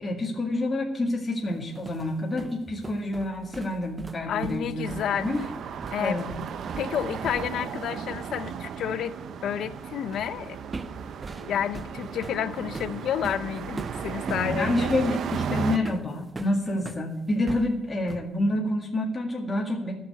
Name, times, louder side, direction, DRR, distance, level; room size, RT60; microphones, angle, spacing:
voice 1, 0.0-4.9 5.2-5.4 6.0-6.3 14.3-19.9, left 1 dB, 25° left, -1 dB, 2.0 m, -28 dB
sound 1, 1.5-7.7 8.0-8.2 10.1-10.4 10.7-17.1 17.5-18.4, right 3 dB, 25° right, 0.6 m, -40 dB
voice 2, 4.3-5.3 5.9-6.2 6.8-9.1 9.4-10.6 11.4-14.9, left 9 dB, 75° left, 13 dB, 0.7 m, -30 dB
sound 2, 4.8-15.8, right 7 dB, 65° right, 0.7 m, -35 dB
11.5 x 6.8 x 8.9 m, 0.92 s
cardioid pair, 90°, 0 cm